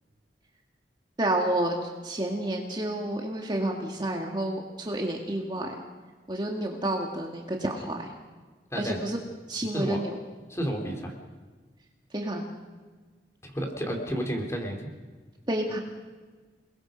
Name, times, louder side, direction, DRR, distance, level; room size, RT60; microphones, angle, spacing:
voice 1, 1.2-1.7 2.0-5.7 6.3-8.1 8.8-9.2 9.5-10.2 12.1-12.5 15.5-15.8, right 1 dB, 25° right, 1 dB, 2.0 m, -29 dB
voice 2, 8.7-9.0 9.7-10.0 10.5-11.1 13.4-14.8, equal, 15° left, 2 dB, 3.7 m, -31 dB
29.0 x 21.5 x 5.3 m, 1.4 s
head